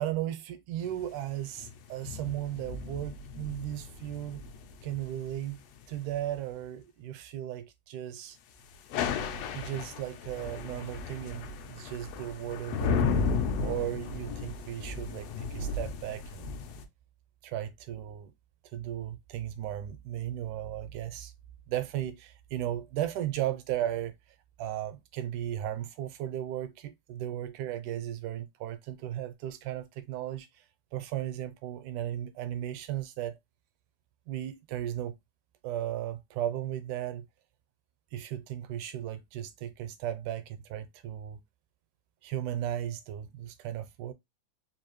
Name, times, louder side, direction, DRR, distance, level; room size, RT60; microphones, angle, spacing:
voice 1, 0.0-4.4 4.8-5.6 5.9-8.4 9.5-16.5 17.4-18.3 18.7-21.3 21.7-24.1 24.6-30.7 30.9-33.4 34.3-35.1 35.6-37.3 38.1-41.4 42.2-44.1, right 12 dB, 80° right, 2.0 m, -36 dB
sound 1, 0.8-6.3 8.7-16.8, left 5 dB, 80° left, 1.4 m, -35 dB
4.8 x 2.6 x 2.9 m
omnidirectional pair, 3.6 m